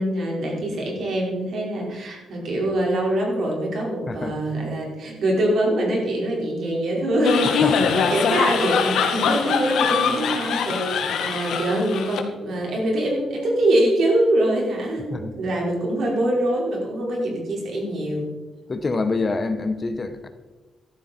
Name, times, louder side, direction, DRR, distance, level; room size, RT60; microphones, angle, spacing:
voice 1, 0.0-18.3, right 1 dB, 60° right, -2 dB, 4.9 m, -24 dB
voice 2, 4.1-4.4 7.4-7.9 15.1-15.3 18.7-20.3, left 3 dB, 25° left, 9 dB, 1.1 m, -26 dB
sound 1, 7.2-12.2, left 6 dB, 80° left, 1.8 m, -23 dB
15.0 x 13.0 x 4.5 m, 1.2 s
cardioid pair, 155°, 0 cm